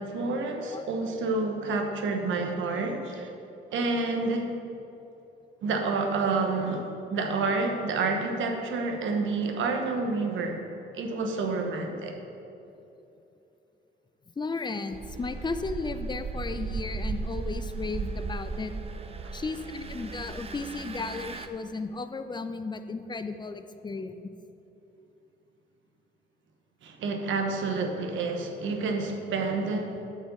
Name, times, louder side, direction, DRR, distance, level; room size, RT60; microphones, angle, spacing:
voice 1, 0.0-3.3 3.7-4.5 5.6-6.8 7.1-10.6 10.9-12.1 26.8-30.0, right 3 dB, 75° right, 4 dB, 1.2 m, -29 dB
voice 2, 14.4-18.7 19.3-24.2, left 3 dB, 20° left, 9 dB, 0.6 m, -34 dB
Engine, 14.9-21.5, right 4 dB, 30° right, 0.6 m, -36 dB
8.6 x 5.4 x 6.7 m, 2.9 s
cardioid pair, 90°, 20 cm